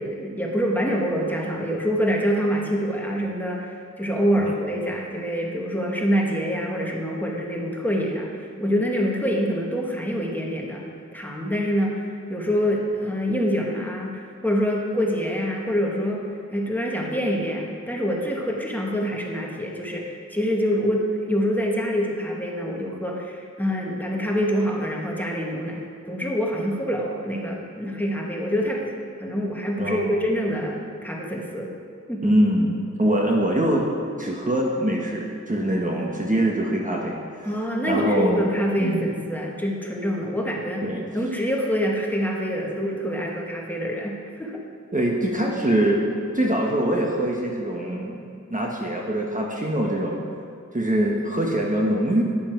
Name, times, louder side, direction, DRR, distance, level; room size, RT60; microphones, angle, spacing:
voice 1, 0.0-10.9 11.1-16.3 16.5-31.7 32.1-32.3 37.4-40.9 41.1-44.6, equal, 5° left, -1 dB, 1.7 m, -26 dB
voice 2, 29.8-30.1 32.2-33.9 34.2-37.5 37.9-38.5 38.8-39.1 40.8-41.0 44.9-46.0 46.3-50.2 50.7-52.2, right 1 dB, 25° right, -1 dB, 1.3 m, -23 dB
11.5 x 9.9 x 4.6 m, 2.2 s
wide cardioid pair, 70°, 31 cm